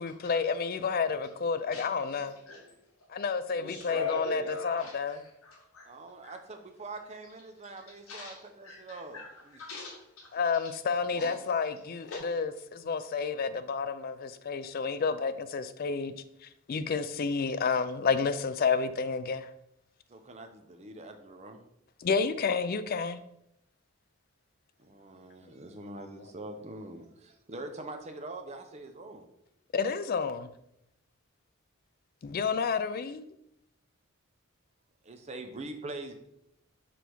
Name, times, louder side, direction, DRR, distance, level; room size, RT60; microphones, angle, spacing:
voice 1, 0.0-2.3 3.1-5.2 10.3-16.1 16.4-19.5 22.0-23.2 29.7-30.5 32.2-33.3, left 5 dB, 40° left, 0.3 m, -30 dB
voice 2, 3.6-4.9 5.4-5.9 6.2-6.3 8.1-8.3 8.6-8.8 9.1-9.3 9.6-10.3 11.2-11.3 12.1-12.2, left 3 dB, 75° left, 1.2 m, -38 dB
voice 3, 5.8-9.6 20.1-21.6 24.8-29.2 35.0-36.1, right 2 dB, 30° right, 0.6 m, -44 dB
6.1 x 3.4 x 4.6 m
head